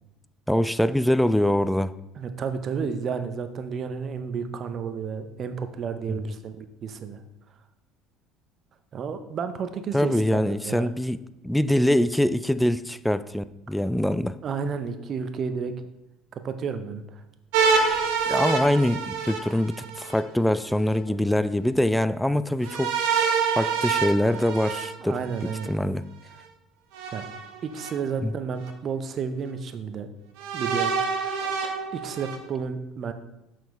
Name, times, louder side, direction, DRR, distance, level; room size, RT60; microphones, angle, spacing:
voice 1, 0.5-1.9 6.1-6.3 9.9-14.4 18.3-23.0 23.6-26.1 28.2-28.3, left 1 dB, 5° left, 14 dB, 0.3 m, -24 dB
voice 2, 2.1-7.2 8.9-10.9 14.4-15.7 16.3-17.2 25.0-25.7 27.1-27.2 27.6-30.1 30.5-30.9 31.2-31.3 31.9-33.1, right 6 dB, 45° right, 9 dB, 0.7 m, -31 dB
sound 1, 17.5-20.2 22.6-25.7 26.9-27.9 28.6-28.7 30.4-32.4, right 5 dB, 70° right, 0.9 m, -26 dB
7.0 x 5.8 x 3.1 m, 0.88 s
hypercardioid pair, 65°, 0 cm